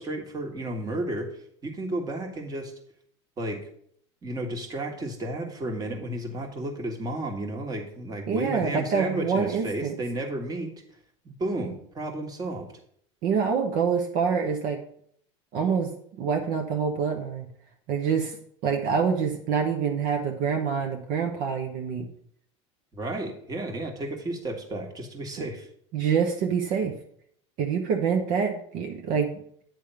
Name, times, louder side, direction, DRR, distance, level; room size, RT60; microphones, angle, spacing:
voice 1, 0.0-1.3 1.6-2.7 3.4-3.6 4.2-10.7 11.2-12.7 22.9-25.7, right 1 dB, 25° right, 3 dB, 1.5 m, -32 dB
voice 2, 8.3-10.0 13.2-14.8 15.5-17.4 17.9-18.4 18.6-22.1 25.9-26.9 27.6-29.6, right 6 dB, 60° right, 3 dB, 0.9 m, -26 dB
9.1 x 3.5 x 5.6 m, 0.66 s
supercardioid pair, 105°, 16 cm